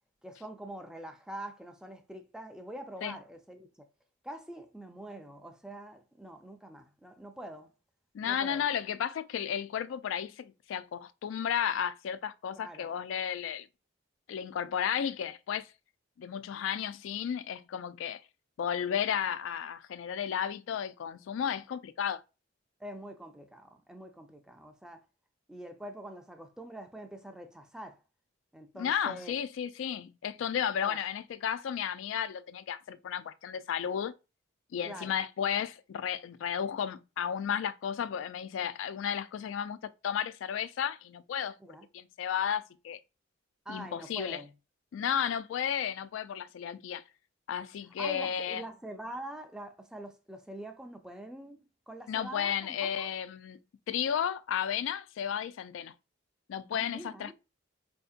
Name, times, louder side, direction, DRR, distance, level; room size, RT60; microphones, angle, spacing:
voice 1, 0.2-3.7 4.2-7.7 8.2-8.7 12.6-12.9 22.8-25.1 25.5-28.0 28.5-29.3 30.8-31.0 34.8-35.2 41.6-41.9 43.7-44.5 48.0-53.1 56.7-57.3, right 1 dB, 5° right, 0.4 m, -44 dB
voice 2, 8.1-13.7 14.3-15.7 16.2-18.2 18.6-22.2 28.8-34.1 34.7-41.5 41.9-43.0 43.7-44.4 44.9-47.0 47.5-48.6 52.1-53.6 53.9-55.9 56.5-57.3, left 8 dB, 75° left, 0.3 m, -33 dB
4.3 x 2.7 x 2.4 m
head